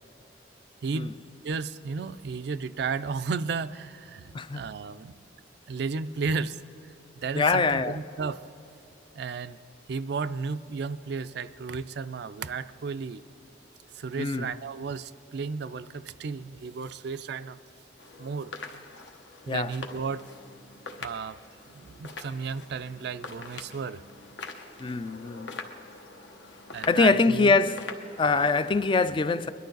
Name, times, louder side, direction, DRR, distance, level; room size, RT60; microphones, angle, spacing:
voice 1, 0.8-1.1 1.4-5.3 5.7-6.6 7.2-8.4 9.1-9.6 9.9-13.2 13.9-17.6 18.2-18.5 19.5-20.3 21.0-21.4 21.7-24.0 26.7-27.6, right 5 dB, 60° right, 0.4 m, -33 dB
voice 2, 7.3-8.0 14.2-14.5 19.5-19.7 24.8-25.5 26.9-27.9 28.2-29.5, left 4 dB, 25° left, 0.3 m, -23 dB
sound 1, 18.0-28.7, left 3 dB, 75° left, 1.0 m, -44 dB
22.0 x 11.5 x 3.9 m
head